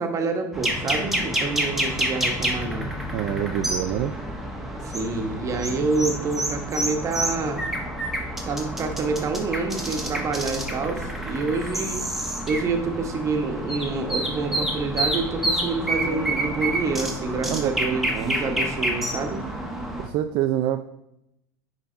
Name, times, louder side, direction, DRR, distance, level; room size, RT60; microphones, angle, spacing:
voice 1, 0.0-2.9 4.8-7.6 8.5-12.1 12.5-19.4, right 3 dB, 30° right, 4 dB, 1.3 m, -27 dB
sound 1, 0.5-20.1, right 1 dB, ahead, 1.2 m, -28 dB
voice 2, 3.1-4.1 17.5-18.4 20.0-20.9, right 12 dB, 55° right, 6 dB, 0.5 m, -27 dB
9.8 x 4.0 x 3.9 m, 0.83 s
supercardioid pair, 115°, 10 cm